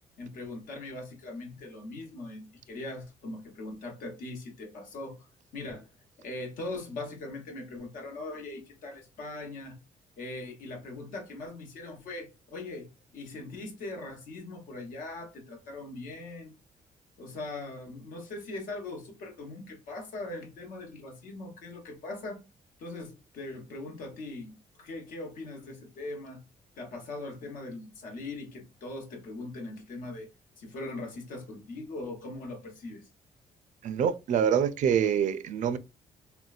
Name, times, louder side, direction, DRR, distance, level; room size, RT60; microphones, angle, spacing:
voice 1, 0.2-5.2 5.5-5.9 6.2-9.8 10.2-16.6 17.2-22.4 22.8-26.4 26.8-30.3 30.6-33.1, left 2 dB, 80° left, 1.0 m, -40 dB
voice 2, 33.8-35.8, right 8 dB, 60° right, 0.4 m, -25 dB
3.6 x 2.2 x 2.3 m
cardioid pair, 105°, 14 cm